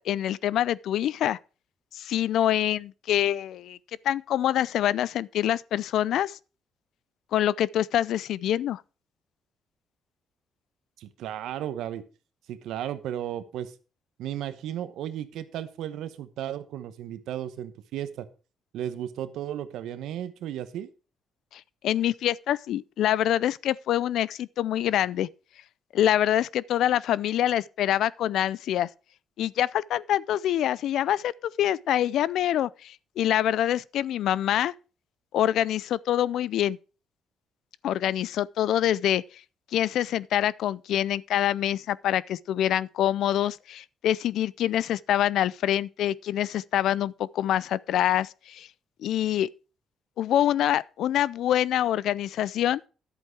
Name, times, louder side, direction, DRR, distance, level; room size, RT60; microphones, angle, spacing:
voice 1, 0.0-1.4 1.9-3.8 4.0-6.4 7.3-8.8 21.5-25.3 25.9-28.9 29.4-34.7 35.3-36.8 37.8-39.2 39.7-48.7 49.0-49.5 50.2-52.8, left 11 dB, 75° left, 0.4 m, -25 dB
voice 2, 11.0-12.0 12.5-13.7 14.2-18.3 18.7-20.9, right 11 dB, 85° right, 1.0 m, -34 dB
11.0 x 8.1 x 4.7 m
cardioid pair, 90°, 0 cm